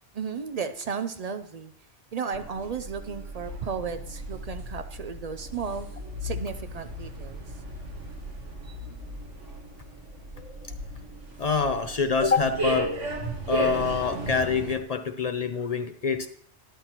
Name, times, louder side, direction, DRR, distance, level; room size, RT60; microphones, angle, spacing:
voice 1, 0.1-1.7 2.1-5.9 6.2-7.4, right 6 dB, 65° right, 10 dB, 0.4 m, -34 dB
sound 1, 2.3-14.8, right 1 dB, 90° right, 1.9 m, -35 dB
voice 2, 11.4-12.9 13.5-16.3, left 5 dB, 55° left, 8 dB, 0.4 m, -26 dB
12.5 x 10.5 x 2.9 m, 0.68 s
omnidirectional pair, 1.2 m